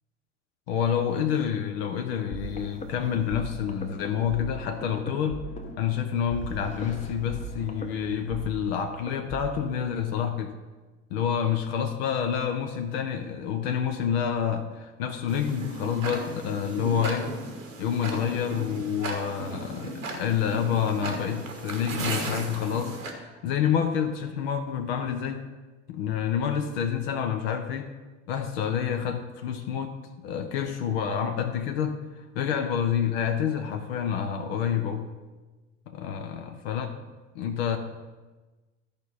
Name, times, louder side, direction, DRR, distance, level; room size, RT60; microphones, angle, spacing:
voice 1, 0.7-5.5 5.8-10.6 11.1-17.3 17.8-25.4 25.9-27.9 28.3-30.0 30.2-32.0 32.3-35.1 35.9-37.0 37.3-37.8, left 8 dB, 50° left, 7 dB, 0.8 m, -28 dB
sound 1, 2.3-9.9, right 1 dB, 20° left, 1.0 m, -39 dB
Tick-tock, 15.3-23.1, right 2 dB, 80° right, 1.3 m, -36 dB
13.5 x 5.1 x 4.2 m, 1.2 s
figure-of-eight pair, 75°, 39 cm